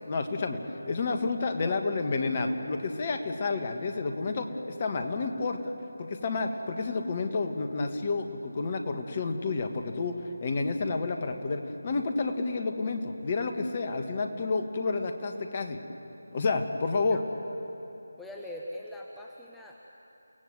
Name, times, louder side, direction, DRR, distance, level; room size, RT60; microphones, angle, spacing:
voice 1, 0.1-0.6 0.9-4.5 4.8-5.6 6.0-10.1 10.4-15.8 16.3-17.2, left 3 dB, 30° left, 6 dB, 1.7 m, -30 dB
voice 2, 18.2-19.9, left 1 dB, 5° left, -2 dB, 1.0 m, -42 dB
30.0 x 17.5 x 8.0 m, 3.0 s
figure-of-eight pair, 160°, 0 cm